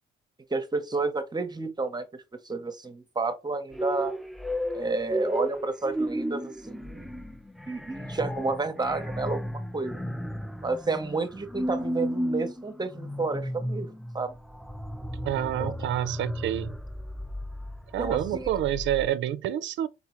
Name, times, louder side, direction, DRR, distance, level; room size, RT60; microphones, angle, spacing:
voice 1, 0.5-4.2 4.7-7.1 7.7-10.0 10.6-13.9 14.1-14.3 15.6-15.7 18.0-18.5, right 3 dB, 20° right, 0.7 m, -30 dB
sound 1, 3.7-19.1, equal, ahead, 0.3 m, -34 dB
voice 2, 15.2-16.7 17.9-19.9, right 12 dB, 70° right, 0.4 m, -28 dB
4.1 x 3.0 x 2.9 m
cardioid pair, 90°, 20 cm